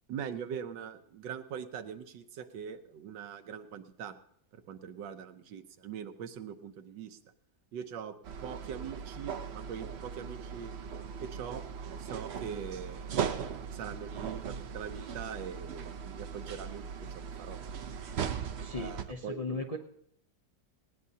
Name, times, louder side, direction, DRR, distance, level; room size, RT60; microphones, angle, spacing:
voice 1, 0.1-4.1 4.5-7.2 7.7-8.2 8.4-10.7 11.2-11.6 12.0-13.1 13.7-16.8 17.1-17.6 18.7-19.7, right 8 dB, 85° right, 9 dB, 1.5 m, -42 dB
sound 1, 8.2-19.0, right 7 dB, 60° right, 0.7 m, -39 dB
voice 2, 18.6-19.8, left 3 dB, 40° left, 2 dB, 0.5 m, -37 dB
19.0 x 18.0 x 2.8 m, 0.70 s
omnidirectional pair, 1.9 m